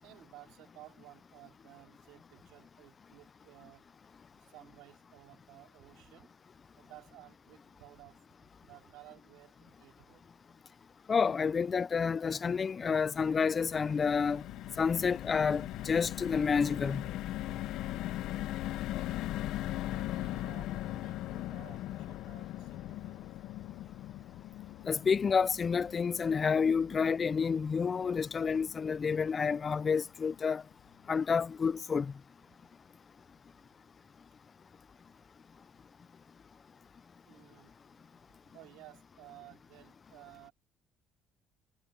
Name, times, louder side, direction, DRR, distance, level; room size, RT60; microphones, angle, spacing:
voice 1, 0.0-3.8 4.4-6.3 6.8-8.2 8.6-10.2 17.4-17.7 19.9-23.3 37.2-37.7 38.5-40.5, right 17 dB, 85° right, 3.2 m, -56 dB
voice 2, 11.1-14.4 14.8-17.1 24.9-30.6 31.1-32.1, left 6 dB, 35° left, 0.4 m, -29 dB
sound 1, 13.1-29.4 29.8-29.9 30.2-30.4, left 15 dB, 75° left, 0.7 m, -40 dB
cardioid pair, 110°, 0 cm